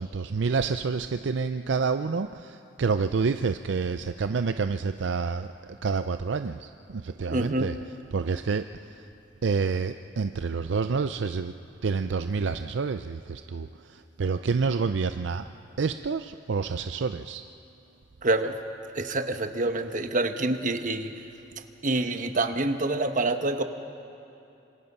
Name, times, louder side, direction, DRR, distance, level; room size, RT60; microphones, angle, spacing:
voice 1, 0.0-5.5 5.8-7.7 8.1-8.7 9.4-11.5 11.8-15.4 15.8-17.4, right 5 dB, 65° right, 9 dB, 0.5 m, -28 dB
voice 2, 7.3-7.7 18.2-18.6 18.9-21.3 21.8-23.6, right 2 dB, 45° right, 7 dB, 1.1 m, -27 dB
27.5 x 25.5 x 5.5 m, 2.8 s
head